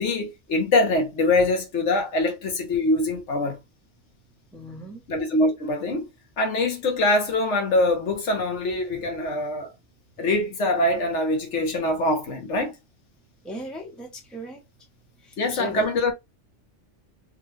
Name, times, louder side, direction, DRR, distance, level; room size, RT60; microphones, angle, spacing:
voice 1, 0.0-3.6 5.1-6.1 6.4-9.7 10.2-12.8 15.4-16.1, left 2 dB, 70° left, 1.2 m, -23 dB
voice 2, 4.5-5.0 13.4-14.6 15.5-15.9, left 1 dB, ahead, 0.7 m, -36 dB
3.5 x 2.3 x 3.2 m
omnidirectional pair, 1.3 m